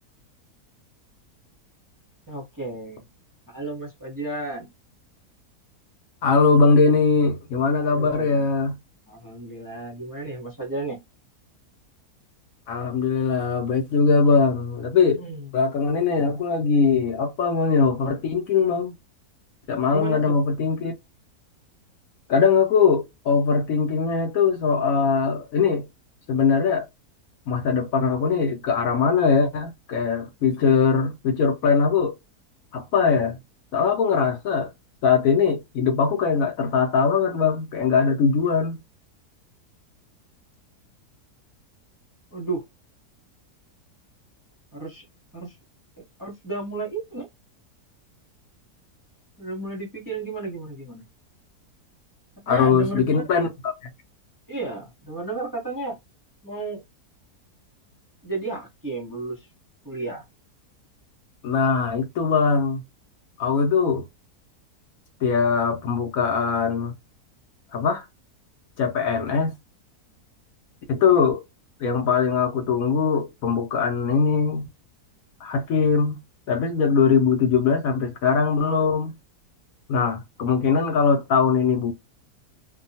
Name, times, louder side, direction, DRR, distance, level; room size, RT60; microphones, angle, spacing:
voice 1, 2.3-3.0 3.5-4.7 7.8-8.5 9.1-11.0 14.4-14.5 15.2-15.5 19.9-20.4 42.3-42.6 44.7-45.0 45.3-45.5 46.0-47.3 49.4-51.0 52.5-53.3 54.5-56.0 56.4-56.8 58.2-59.4 59.8-60.2, right 3 dB, 20° right, 0.6 m, -33 dB
voice 2, 6.2-8.8 12.7-15.2 15.5-19.0 19.7-21.0 22.3-25.9 26.3-26.9 27.5-32.2 32.7-33.4 33.7-34.7 35.0-38.8 52.5-53.7 61.4-62.8 63.4-64.0 65.2-66.9 67.7-68.0 68.8-69.5 70.9-71.4 71.8-74.7 75.4-76.2 76.5-79.1 79.9-81.9, left 5 dB, 70° left, 1.0 m, -21 dB
2.7 x 2.2 x 2.7 m
omnidirectional pair, 1.7 m